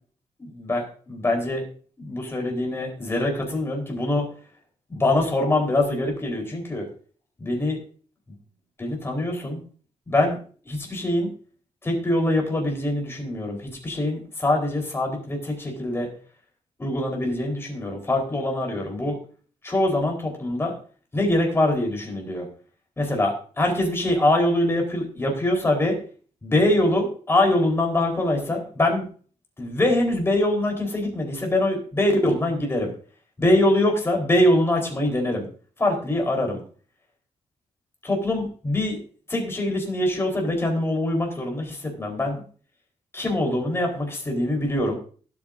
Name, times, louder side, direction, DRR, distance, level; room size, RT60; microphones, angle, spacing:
voice 1, 0.6-1.6 2.0-4.3 4.9-6.9 7.4-7.8 8.8-9.6 10.1-10.4 10.7-11.3 11.8-16.1 16.8-19.2 19.6-20.7 21.1-22.5 23.0-26.0 26.4-29.1 29.6-32.9 33.4-35.5 35.8-36.6 38.0-39.0 39.3-42.4 43.1-45.0, left 1 dB, 20° left, 1 dB, 4.2 m, -23 dB
19.0 x 8.8 x 2.7 m, 0.42 s
wide cardioid pair, 140°, 12 cm